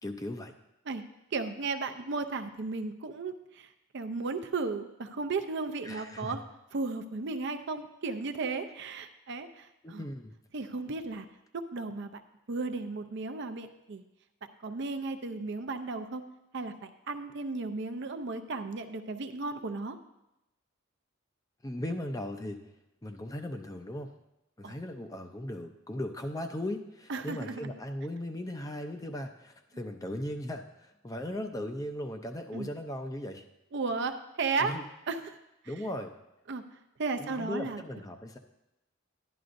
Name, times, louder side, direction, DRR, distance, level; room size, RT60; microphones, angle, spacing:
voice 1, 0.0-0.5 5.8-6.4 9.8-10.3 21.6-22.7 23.0-24.1 24.6-33.4 34.6-34.8 35.7-36.1 37.2-38.4, left 1 dB, 15° left, 6 dB, 0.5 m, -38 dB
voice 2, 1.3-3.7 3.9-6.4 6.7-10.0 10.5-11.3 11.5-12.2 12.5-14.0 14.6-16.2 16.5-20.0 24.6-24.8 27.1-27.7 32.5-32.7 33.7-34.8 35.1-35.4 36.5-36.6 37.0-37.8, right 3 dB, 55° right, 8 dB, 0.6 m, -34 dB
11.5 x 11.0 x 2.6 m, 0.92 s
head